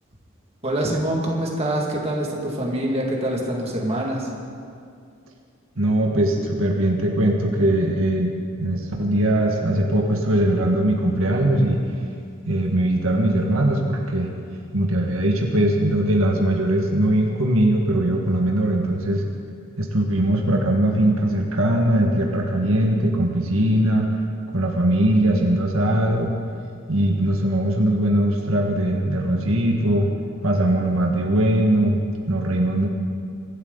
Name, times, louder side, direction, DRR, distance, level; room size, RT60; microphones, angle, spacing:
voice 1, 0.6-4.3, right 1 dB, 30° right, -2 dB, 2.2 m, -25 dB
voice 2, 5.8-11.8 12.5-14.3 14.7-19.2 19.8-24.1 24.5-26.3 26.9-30.1 30.4-32.9, right 1 dB, 75° right, 0 dB, 1.8 m, -20 dB
24.0 x 12.0 x 4.0 m, 2.3 s
head